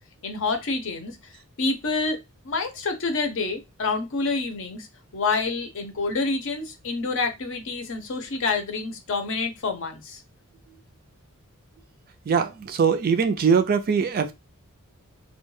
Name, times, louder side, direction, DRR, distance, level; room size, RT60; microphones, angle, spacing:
voice 1, 0.2-1.2 1.6-2.2 2.4-4.9 5.1-10.2, left 3 dB, 60° left, 0.6 m, -27 dB
voice 2, 12.3-14.3, right 6 dB, 45° right, 0.3 m, -22 dB
2.2 x 2.1 x 3.1 m
head